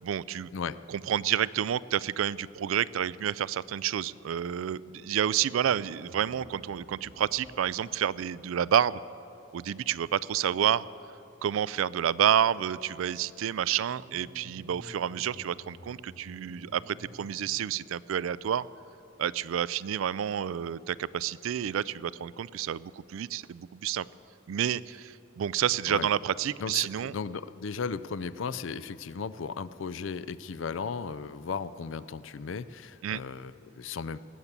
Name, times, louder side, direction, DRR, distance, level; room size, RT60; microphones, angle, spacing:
voice 1, 0.0-0.5 0.9-9.0 9.5-10.9 11.4-18.7 19.2-24.1 24.5-27.1 33.0-33.2, right 9 dB, 90° right, 19 dB, 0.3 m, -29 dB
sound 1, 5.6-8.0 13.3-17.3, equal, 70° right, 1.5 m, -51 dB
voice 2, 26.6-34.2, left 5 dB, 75° left, 15 dB, 0.4 m, -36 dB
19.0 x 7.3 x 8.2 m, 3.0 s
head